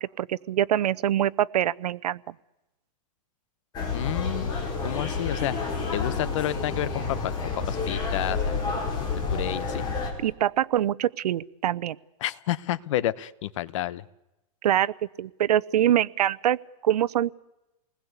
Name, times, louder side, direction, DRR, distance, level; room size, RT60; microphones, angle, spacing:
voice 1, 0.2-2.2 10.2-12.0 14.6-17.3, right 11 dB, 85° right, 20 dB, 0.8 m, -24 dB
sound 1, 3.7-10.1, left 4 dB, 20° left, 4.7 m, -29 dB
voice 2, 3.9-5.5 5.9-8.7 9.1-9.8 12.2-14.0, left 13 dB, 50° left, 19 dB, 1.0 m, -30 dB
28.5 x 20.0 x 8.2 m, 0.96 s
supercardioid pair, 165°, 20 cm